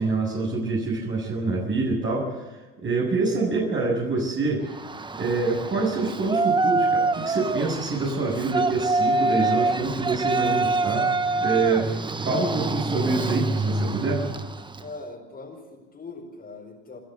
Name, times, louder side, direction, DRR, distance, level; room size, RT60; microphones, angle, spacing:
voice 1, 0.0-2.4 2.8-4.6 5.1-11.1 11.4-12.0 12.2-14.2, right 3 dB, 40° right, -3 dB, 7.4 m, -26 dB
Yell, 4.7-14.9, right 3 dB, 15° right, 1.2 m, -26 dB
voice 2, 14.7-17.0, left 3 dB, 30° left, 0 dB, 5.0 m, -41 dB
29.0 x 11.5 x 8.2 m, 1.2 s
hypercardioid pair, 85°, 32 cm